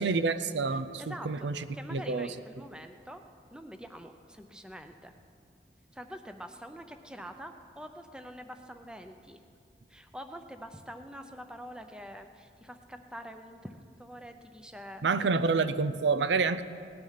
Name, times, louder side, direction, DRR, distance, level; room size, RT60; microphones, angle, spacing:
voice 1, 0.0-2.3 15.0-16.6, right 4 dB, 85° right, 12 dB, 0.6 m, -28 dB
voice 2, 0.7-1.5 1.7-3.2 3.5-5.1 5.9-9.4 9.9-15.0, equal, 5° right, 6 dB, 0.7 m, -45 dB
18.0 x 10.5 x 5.8 m, 2.2 s
head